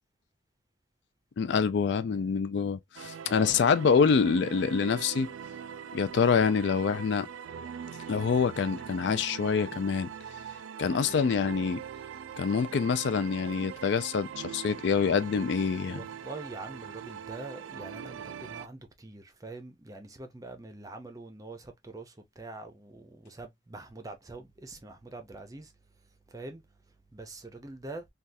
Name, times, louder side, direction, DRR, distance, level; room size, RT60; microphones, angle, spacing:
voice 1, 1.4-5.3 5.9-7.3 8.1-10.1 10.8-11.8 12.4-16.0, left 6 dB, 60° left, 0.3 m, -26 dB
voice 2, 1.9-2.2 3.2-3.6 15.7-25.7 26.0-28.1, right 2 dB, 15° right, 0.5 m, -45 dB
sound 1, 2.9-18.7, right 8 dB, 80° right, 0.3 m, -42 dB
3.4 x 2.3 x 2.6 m
head